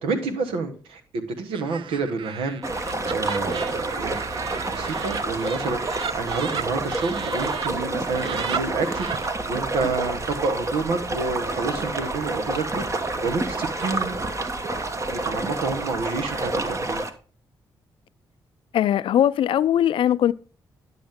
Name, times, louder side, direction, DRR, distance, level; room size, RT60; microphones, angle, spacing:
voice 1, 0.0-2.6 3.0-4.2 4.7-9.1 9.5-12.8 13.2-14.1 15.1-17.0, right 4 dB, 85° right, 1.2 m, -28 dB
Laughter, 1.5-7.7 8.1-9.3, right 8 dB, 65° right, 0.5 m, -35 dB
sound 1, 2.6-17.1, right 2 dB, 35° right, 1.1 m, -29 dB
voice 2, 18.7-20.3, left 11 dB, 70° left, 0.4 m, -20 dB
10.5 x 6.2 x 3.6 m
supercardioid pair, 50°, 9 cm